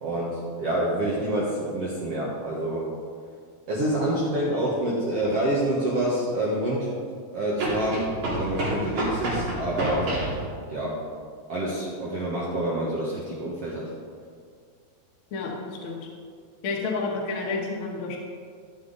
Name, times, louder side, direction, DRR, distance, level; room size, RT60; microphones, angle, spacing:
voice 1, 0.0-2.9 3.7-6.9 7.3-10.1 10.7-11.0 11.5-13.8, right 1 dB, 75° right, -5 dB, 1.3 m, -27 dB
sound 1, 5.1-5.2 7.6-10.4, right 1 dB, 50° right, 3.8 m, -29 dB
voice 2, 15.3-16.0 16.6-18.2, left 3 dB, 75° left, -2 dB, 1.2 m, -30 dB
13.0 x 7.5 x 4.0 m, 2.1 s
omnidirectional pair, 4.8 m